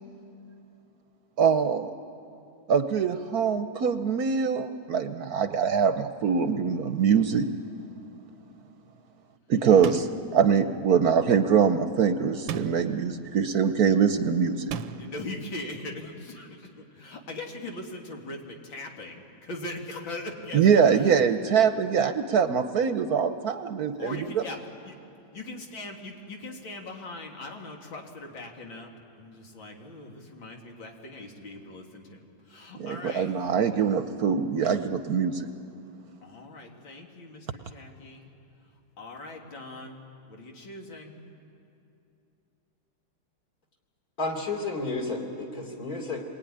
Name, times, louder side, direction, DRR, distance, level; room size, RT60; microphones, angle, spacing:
voice 1, 1.4-1.9 2.7-7.5 9.5-10.1 10.3-14.7 20.5-24.2 32.8-35.5, right 7 dB, 60° right, 9 dB, 1.2 m, -23 dB
sound 1, 9.8-10.3 12.5-13.0 14.7-15.2, right 10 dB, 85° right, 1.5 m, -35 dB
voice 2, 15.0-21.1 24.0-24.6 24.9-25.0 25.3-28.9 29.2-32.2 32.4-33.3 36.2-38.3 39.0-40.0 40.3-41.2, left 2 dB, 85° left, 1 dB, 3.3 m, -40 dB
voice 3, 44.2-46.2, left 3 dB, 50° left, 1 dB, 4.0 m, -31 dB
27.0 x 21.5 x 10.0 m, 2.7 s
omnidirectional pair, 2.0 m